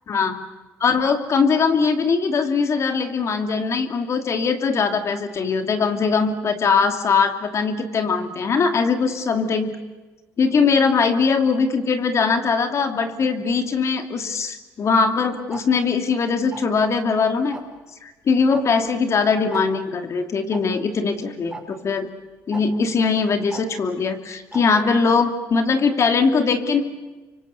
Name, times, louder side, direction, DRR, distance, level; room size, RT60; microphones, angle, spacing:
voice 1, 0.8-9.8 10.4-17.6 18.0-22.1 22.5-26.8, left 5 dB, 45° left, 7 dB, 2.7 m, -21 dB
Tick-tock, 15.5-15.6 16.5-16.8 17.5-17.8 18.5-18.6 18.9-19.0 19.5-19.6 20.5-20.6 21.5-21.6 22.5-22.6 23.5-23.6 24.5-24.6, right 3 dB, 10° right, 5.2 m, -34 dB
28.5 x 24.5 x 6.9 m, 1.2 s
cardioid pair, 85°, 7 cm